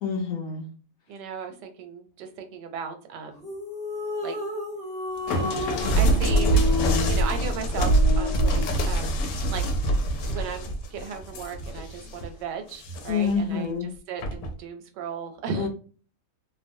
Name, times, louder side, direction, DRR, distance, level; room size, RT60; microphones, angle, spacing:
voice 1, 0.0-0.7 13.1-13.9 15.6-15.7, left 6 dB, 65° left, 0.8 m, -27 dB
voice 2, 1.1-3.5 4.2-4.4 5.9-6.8 7.1-9.7 10.2-13.7 14.1-15.7, right 6 dB, 85° right, 1.2 m, -36 dB
sound 1, 3.4-8.8, left 3 dB, 40° left, 1.2 m, -32 dB
sound 2, 5.3-12.3 12.7-13.4 14.2-14.5, right 1 dB, 90° left, 1.2 m, -24 dB
2.9 x 2.1 x 2.6 m
omnidirectional pair, 1.8 m